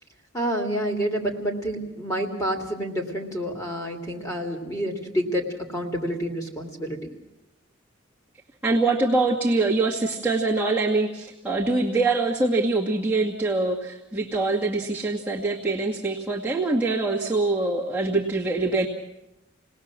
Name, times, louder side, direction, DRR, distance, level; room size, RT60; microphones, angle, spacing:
voice 1, 0.3-5.4 5.7-7.0, equal, 15° left, 2 dB, 3.0 m, -28 dB
voice 2, 8.6-18.9, right 3 dB, 10° right, -5 dB, 2.1 m, -24 dB
28.5 x 19.5 x 7.6 m, 0.92 s
head